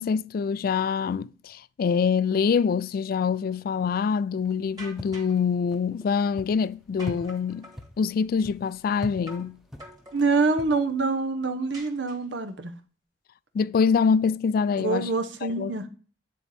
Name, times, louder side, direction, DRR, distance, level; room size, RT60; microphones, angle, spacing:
voice 1, 0.0-7.7 8.0-9.6 13.5-15.1 15.4-15.9, left 6 dB, 55° left, 0.3 m, -25 dB
sound 1, 4.4-11.2, left 1 dB, ahead, 0.8 m, -44 dB
sound 2, 4.8-5.4 7.0-7.9 9.3-9.5 9.8-10.5 11.7-12.5, right 1 dB, 25° right, 1.9 m, -45 dB
voice 2, 10.1-12.7 14.8-15.9, right 3 dB, 90° right, 1.0 m, -25 dB
9.8 x 4.4 x 3.4 m
head